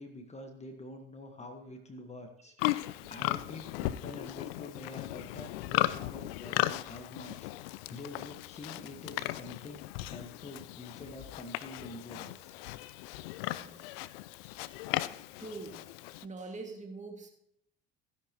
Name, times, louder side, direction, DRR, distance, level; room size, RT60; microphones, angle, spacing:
voice 1, 0.0-12.6, left 2 dB, 20° left, 5 dB, 1.6 m, -47 dB
Livestock farm animals working animals, 2.6-16.3, left 17 dB, 70° left, 0.6 m, -36 dB
voice 2, 13.6-14.0 14.6-14.7 15.4-15.9 16.2-17.3, right 3 dB, 25° right, 2 dB, 2.3 m, -44 dB
15.5 x 10.0 x 3.1 m, 0.73 s
hypercardioid pair, 70°, 31 cm